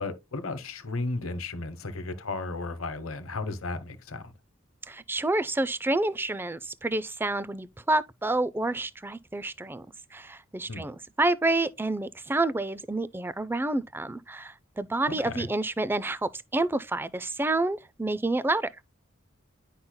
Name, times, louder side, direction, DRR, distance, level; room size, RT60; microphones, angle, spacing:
voice 1, 0.0-4.2 10.7-10.9 15.2-15.5, left 3 dB, 85° left, 1.0 m, -34 dB
voice 2, 4.9-9.9 10.1-18.7, right 2 dB, 10° right, 0.4 m, -28 dB
10.5 x 5.5 x 2.2 m
head